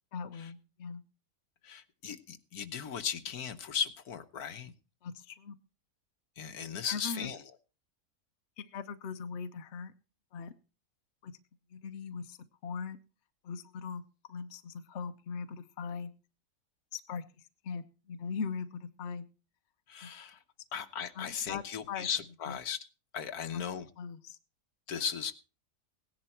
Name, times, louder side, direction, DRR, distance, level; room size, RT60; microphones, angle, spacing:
voice 1, 0.1-1.0 5.0-5.6 6.9-7.3 8.6-9.9 10.3-10.5 11.2-11.4 11.7-12.4 12.6-13.0 13.4-14.0 14.3-16.1 16.9-19.3 20.0-20.1 21.1-22.1 22.5-22.6 23.5-23.6 24.0-24.4, left 5 dB, 50° left, 8 dB, 1.1 m, -40 dB
voice 2, 1.6-4.7 6.4-7.4 19.9-20.4 20.7-22.8 23.1-23.9 24.9-25.3, left 7 dB, 75° left, 9 dB, 1.5 m, -37 dB
17.5 x 10.5 x 4.5 m, 0.34 s
omnidirectional pair, 1.7 m